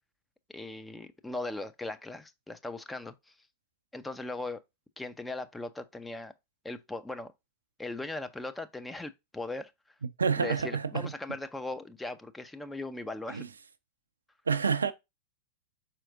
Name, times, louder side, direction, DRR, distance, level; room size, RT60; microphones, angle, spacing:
voice 1, 0.5-3.3 3.9-4.6 5.0-6.3 6.6-7.3 7.8-9.7 10.4-13.4, left 2 dB, 5° left, 0.5 m, -38 dB
voice 2, 10.2-11.1 13.3-13.5 14.5-14.9, right 6 dB, 75° right, 0.4 m, -28 dB
4.8 x 4.4 x 2.4 m
figure-of-eight pair, 90°, 0 cm